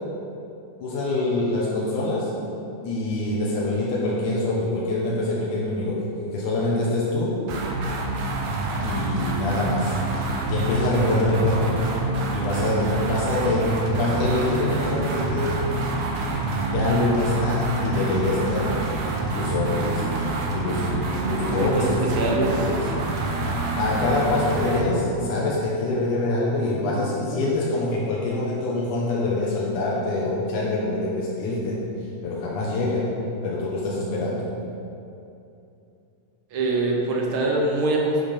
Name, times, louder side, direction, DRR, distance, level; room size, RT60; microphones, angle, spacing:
voice 1, 0.8-2.3 2.8-7.4 8.8-10.0 10.5-11.8 12.3-15.6 16.7-18.8 19.3-20.1 20.5-22.8 23.8-31.8 32.2-33.1 33.4-34.5, left 2 dB, 85° left, -5 dB, 2.6 m, -25 dB
sound 1, 7.5-24.9, right 2 dB, 80° right, 2.4 m, -27 dB
sound 2, 21.1-21.6 22.2-23.5 23.9-25.4 26.6-27.5, right 1 dB, 40° right, 1.7 m, -36 dB
voice 2, 21.6-22.5 36.5-38.2, right 2 dB, 60° right, -1 dB, 1.5 m, -23 dB
10.5 x 5.9 x 5.2 m, 2.7 s
omnidirectional pair, 3.5 m